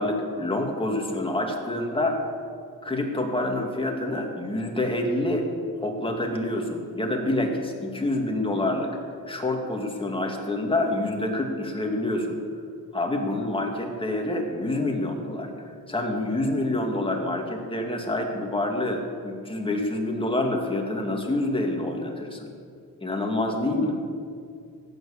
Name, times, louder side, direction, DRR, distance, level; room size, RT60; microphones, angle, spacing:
voice 1, 0.0-2.2 2.8-5.4 5.8-9.0 9.3-12.4 12.9-22.5 23.0-23.9, left 1 dB, 15° left, 1 dB, 2.2 m, -27 dB
15.0 x 9.3 x 7.1 m, 2.3 s
cardioid pair, 110°, 35 cm